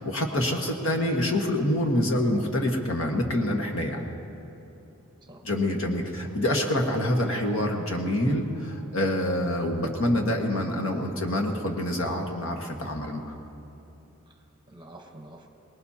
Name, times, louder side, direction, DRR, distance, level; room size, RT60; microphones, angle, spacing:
voice 1, 0.0-4.1 5.4-13.3, left 1 dB, 70° left, 2 dB, 1.6 m, -26 dB
voice 2, 0.9-1.3 5.2-5.5 6.2-6.6 14.3-15.5, right 1 dB, 20° right, 2 dB, 1.1 m, -49 dB
24.0 x 19.5 x 2.9 m, 3.0 s
head